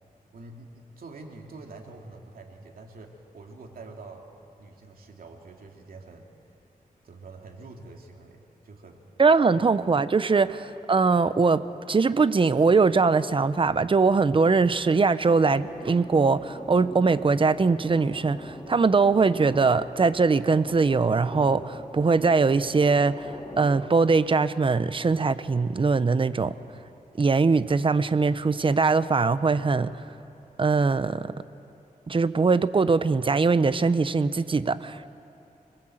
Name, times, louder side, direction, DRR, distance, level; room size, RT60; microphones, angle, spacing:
voice 1, 0.3-4.2 4.6-6.3 7.0-9.0, right 3 dB, 90° right, 2 dB, 2.6 m, -45 dB
voice 2, 9.2-26.5 27.2-29.9 30.6-31.3 32.1-35.1, right 4 dB, 35° right, 14 dB, 0.7 m, -22 dB
sound 1, 15.5-23.8, left 1 dB, 30° left, 2.4 m, -43 dB
26.0 x 20.5 x 7.8 m, 2.8 s
wide cardioid pair, 110°, 15 cm